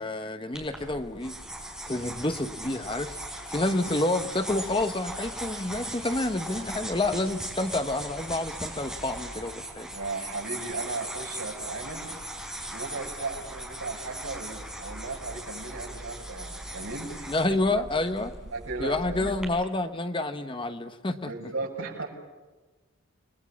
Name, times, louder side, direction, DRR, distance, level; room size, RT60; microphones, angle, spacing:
voice 1, 0.0-1.4 1.9-3.2 3.5-9.9 17.3-18.3 18.8-21.3, left 2 dB, 25° left, 9 dB, 1.0 m, -29 dB
sound 1, 0.5-19.4, right 1 dB, 5° right, 5.1 m, -39 dB
voice 2, 9.9-12.1 12.7-17.8 18.4-19.3 21.2-22.1, right 3 dB, 70° right, -2 dB, 7.7 m, -36 dB
29.0 x 21.0 x 7.3 m, 1.2 s
head